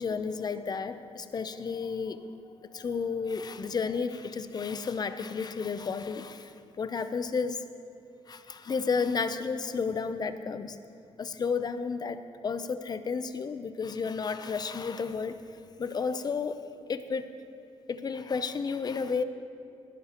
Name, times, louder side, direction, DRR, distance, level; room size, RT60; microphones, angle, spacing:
voice 1, 0.0-2.3 2.7-7.7 8.3-10.8 11.2-15.5 15.8-16.6 16.9-17.3 17.9-19.2, left 5 dB, 40° left, 11 dB, 0.5 m, -32 dB
19.0 x 10.5 x 2.9 m, 2.6 s
wide cardioid pair, 140°, 11 cm